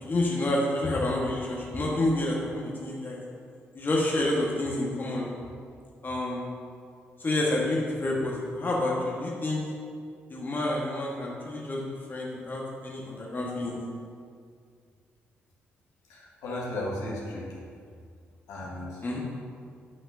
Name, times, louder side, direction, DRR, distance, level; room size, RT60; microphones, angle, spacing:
voice 1, 0.0-3.2 3.7-5.3 6.0-6.4 7.2-9.6 10.3-11.8 12.1-13.8 19.0-19.2, left 1 dB, 30° left, -4 dB, 1.4 m, -28 dB
voice 2, 16.1-17.6 18.5-19.0, left 1 dB, 65° left, -5 dB, 1.7 m, -35 dB
11.0 x 5.8 x 2.7 m, 2.2 s
figure-of-eight pair, 40°, 6 cm